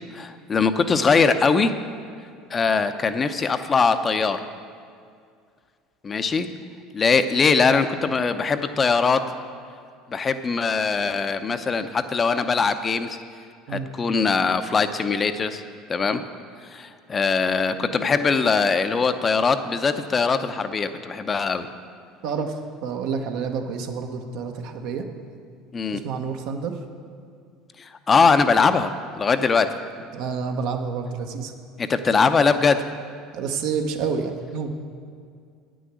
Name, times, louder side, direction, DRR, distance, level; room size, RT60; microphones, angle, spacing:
voice 1, 0.1-1.8 2.5-4.5 6.0-6.5 6.9-9.3 10.1-13.2 13.7-15.6 15.9-16.2 16.7-21.7 25.7-26.0 27.8-29.7 31.8-32.9, left 5 dB, 30° left, 10 dB, 0.6 m, -21 dB
voice 2, 22.2-25.1 25.9-26.8 30.1-31.5 33.3-34.7, right 5 dB, 70° right, 4 dB, 1.0 m, -29 dB
9.0 x 6.3 x 8.2 m, 2.2 s
hypercardioid pair, 80°, 0 cm